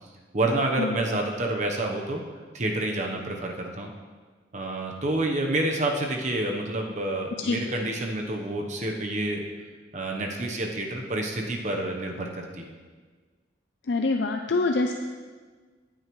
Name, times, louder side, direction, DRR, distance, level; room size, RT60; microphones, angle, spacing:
voice 1, 0.3-2.2 2.5-3.9 4.5-9.4 9.9-12.7, right 2 dB, 40° right, 1 dB, 1.0 m, -28 dB
voice 2, 13.9-14.9, left 3 dB, 70° left, 4 dB, 0.5 m, -25 dB
15.0 x 8.7 x 3.2 m, 1.5 s
head